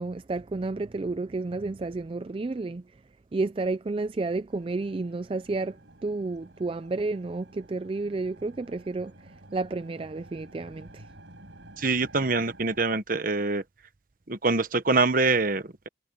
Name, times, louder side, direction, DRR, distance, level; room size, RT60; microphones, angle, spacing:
voice 1, 0.0-2.9 3.3-11.1, right 3 dB, 30° right, 0.4 m, -31 dB
sound 1, 4.5-12.9, right 1 dB, 80° right, 5.8 m, -52 dB
voice 2, 11.8-13.6 14.3-15.9, right 3 dB, 50° right, 1.2 m, -25 dB
head